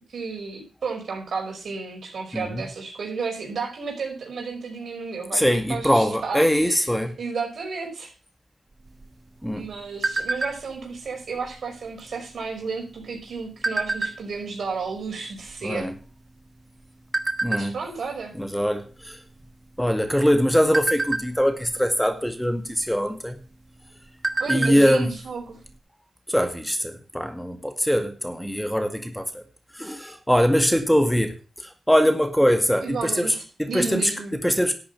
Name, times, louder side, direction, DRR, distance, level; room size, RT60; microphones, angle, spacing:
voice 1, 0.1-6.9 7.2-8.1 9.6-15.9 17.5-18.3 24.4-25.6 32.8-34.3, right 4 dB, 75° right, 2 dB, 5.4 m, -32 dB
voice 2, 2.3-2.6 5.3-7.2 9.4-9.7 15.6-15.9 17.4-17.8 18.3-19.2 19.8-23.4 24.5-25.1 26.3-29.4 29.7-34.7, equal, 5° left, 7 dB, 2.0 m, -22 dB
sound 1, 8.8-10.8 11.3-11.6 11.9-12.2 12.9-14.5 15.1-15.2 15.4-16.6 17.1-17.6 18.2-18.4 18.7-18.9 19.4-19.9 20.3-21.7 22.8-22.9 23.4-23.5 23.8-24.9 25.2-25.3 25.6-25.8, right 3 dB, 35° right, 1.7 m, -27 dB
12.0 x 8.5 x 5.5 m, 0.36 s
cardioid pair, 50°, 0 cm